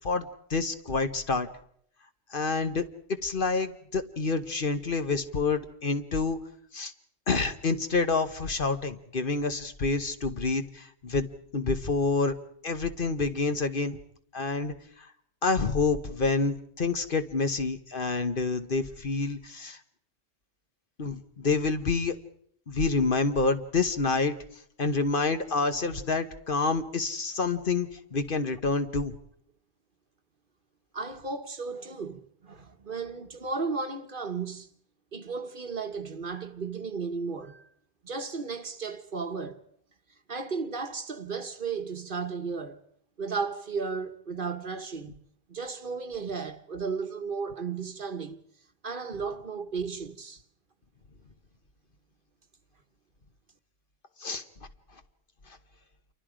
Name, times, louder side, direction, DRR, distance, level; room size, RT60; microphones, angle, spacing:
voice 1, 0.0-1.5 2.3-2.8 3.2-6.4 6.7-6.9 7.3-12.3 12.6-14.0 14.3-14.7 15.4-19.8 21.0-22.1 22.7-24.3 24.8-29.2 54.2-54.4, left 4 dB, 50° left, 1.2 m, -28 dB
voice 2, 30.9-34.7 35.1-37.7 38.0-39.6 40.3-42.8 43.2-45.2 45.5-48.4 48.8-50.4, right 5 dB, 45° right, 1.3 m, -34 dB
28.0 x 24.0 x 5.0 m
omnidirectional pair, 1.2 m